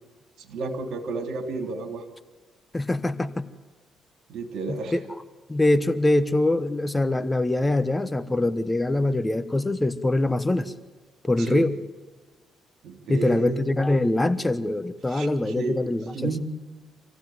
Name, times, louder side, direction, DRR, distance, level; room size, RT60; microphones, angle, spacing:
voice 1, 0.4-2.1 4.3-5.0 11.4-11.7 12.8-13.6 15.1-15.8 16.1-16.4, right 3 dB, 75° right, 5 dB, 3.2 m, -31 dB
voice 2, 2.7-3.5 4.7-5.0 5.5-10.7 11.3-11.8 13.1-16.3, left 2 dB, 15° left, 12 dB, 1.1 m, -23 dB
26.0 x 15.5 x 9.4 m, 1.3 s
cardioid pair, 90°, 0 cm